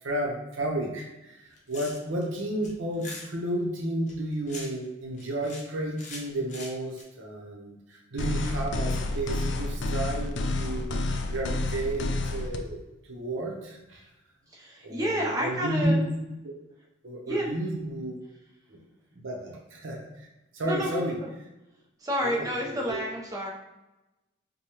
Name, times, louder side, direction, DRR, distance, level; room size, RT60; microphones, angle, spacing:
voice 1, 0.0-12.8 13.1-14.0 14.8-16.0 16.4-16.5 17.0-18.2 18.7-18.8 19.1-21.2 22.2-23.0, right 1 dB, 85° right, -1 dB, 0.7 m, -32 dB
sound 1, 1.5-2.2 2.6-3.2 4.1-4.9 5.2-5.7 6.0-7.0, left 3 dB, 40° left, 0.7 m, -42 dB
sound 2, 8.2-12.6, left 2 dB, 65° left, 0.4 m, -29 dB
voice 2, 14.5-16.0 17.3-17.5 20.6-21.1 22.0-23.5, equal, 20° right, -2 dB, 0.6 m, -29 dB
4.9 x 2.2 x 2.9 m, 0.99 s
head